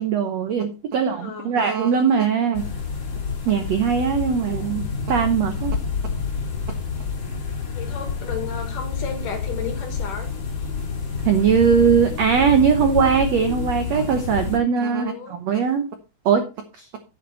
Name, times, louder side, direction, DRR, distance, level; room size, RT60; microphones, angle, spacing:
voice 1, 0.0-2.6 3.5-5.7 11.2-15.8 16.2-16.4 16.8-16.9, right 7 dB, 80° right, 7 dB, 1.5 m, -20 dB
voice 2, 0.9-1.6 7.7-10.3 14.9-15.4, left 6 dB, 60° left, 5 dB, 3.5 m, -34 dB
sound 1, 2.5-14.6, left 5 dB, 40° left, 3.7 m, -28 dB
10.5 x 8.4 x 4.1 m, 0.31 s
omnidirectional pair, 4.5 m